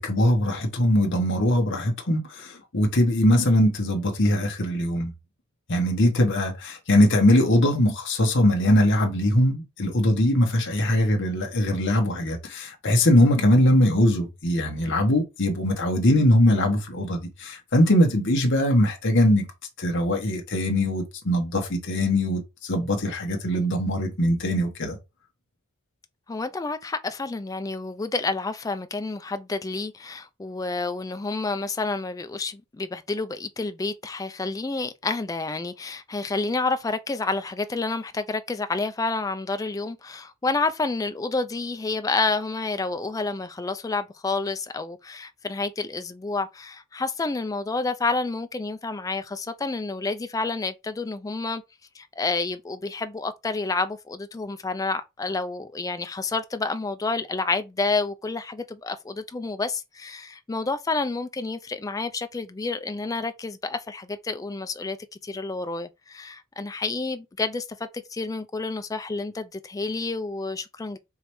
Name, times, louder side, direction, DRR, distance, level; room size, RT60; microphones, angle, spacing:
voice 1, 0.0-5.1 5.7-19.5 19.8-25.0, left 1 dB, 55° left, 1.1 m, -21 dB
voice 2, 26.3-51.6 51.9-65.0 65.2-71.0, left 3 dB, 15° left, 0.3 m, -29 dB
4.8 x 3.2 x 3.1 m
head